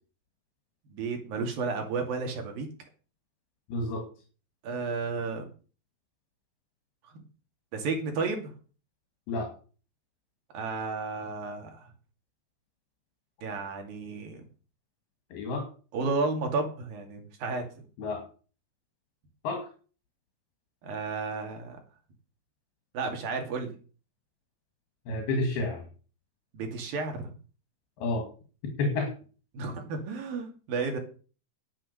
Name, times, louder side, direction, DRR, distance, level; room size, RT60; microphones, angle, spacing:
voice 1, 0.9-2.7 4.6-5.5 7.1-7.2 7.7-8.5 10.5-11.9 13.4-14.4 15.9-17.6 20.8-21.8 22.9-23.7 26.5-27.3 29.5-31.0, right 4 dB, 65° right, 3 dB, 4.3 m, -32 dB
voice 2, 3.7-4.1 9.3-9.5 15.3-15.7 18.0-18.3 19.4-19.7 25.1-25.8 28.0-28.3 28.8-29.1, left 2 dB, 75° left, 4 dB, 4.3 m, -30 dB
10.5 x 8.9 x 6.9 m, 0.38 s
omnidirectional pair, 4.5 m